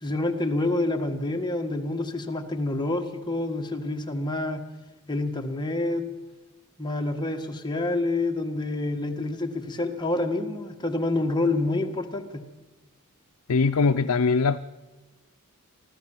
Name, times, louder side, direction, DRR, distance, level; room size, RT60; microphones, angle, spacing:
voice 1, 0.0-4.6 5.1-6.1 6.8-12.4, left 2 dB, 20° left, 1.8 m, -27 dB
voice 2, 13.5-14.6, left 4 dB, 75° left, 0.6 m, -21 dB
24.5 x 14.5 x 7.4 m
head